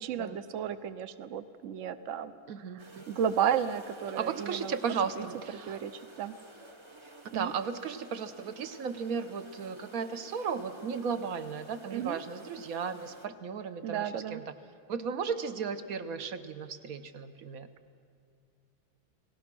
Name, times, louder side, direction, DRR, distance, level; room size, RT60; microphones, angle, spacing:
voice 1, 0.0-2.3 2.7-4.8 5.2-5.3 5.7-6.3 7.3-7.5 11.9-12.2 13.8-14.4, right 8 dB, 85° right, 12 dB, 0.6 m, -33 dB
voice 2, 2.5-3.1 4.2-5.8 7.3-14.5 14.9-17.7, right 6 dB, 55° right, 11 dB, 1.1 m, -35 dB
sound 1, 2.8-13.3, right 1 dB, 25° right, 0.6 m, -52 dB
29.5 x 19.0 x 6.1 m, 2.4 s
omnidirectional pair, 2.2 m